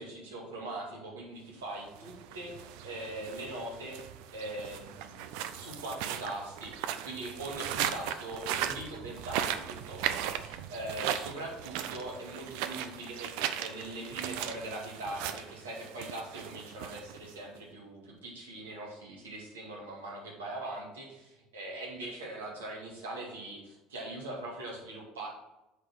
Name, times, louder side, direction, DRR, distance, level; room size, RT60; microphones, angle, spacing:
voice 1, 0.0-2.5 2.8-4.0 4.3-25.3, right 1 dB, 90° right, -2 dB, 2.0 m, -41 dB
sound 1, 1.9-17.6, right 10 dB, 75° right, 0.5 m, -37 dB
8.1 x 3.8 x 6.2 m, 0.96 s
hypercardioid pair, 70°, 0 cm